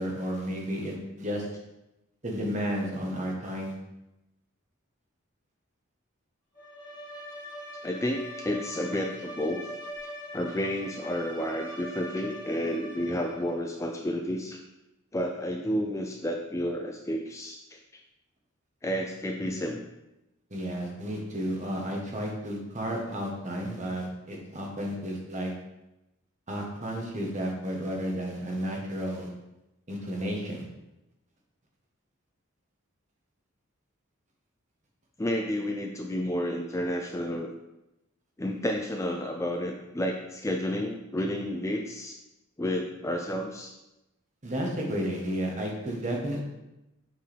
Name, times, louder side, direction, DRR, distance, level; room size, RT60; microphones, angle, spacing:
voice 1, 0.0-1.5 2.2-3.7 19.4-19.5 20.5-25.5 26.5-29.3 29.9-30.6 44.4-46.4, equal, 35° right, 0 dB, 1.2 m, -32 dB
Bowed string instrument, 6.5-13.6, left 1 dB, 40° left, 2.1 m, -42 dB
voice 2, 7.8-9.6 10.3-14.6 15.1-17.8 18.8-19.8 35.2-37.5 38.4-42.1 42.6-43.7, equal, 15° left, 2 dB, 0.4 m, -31 dB
7.3 x 4.6 x 3.4 m, 0.94 s
head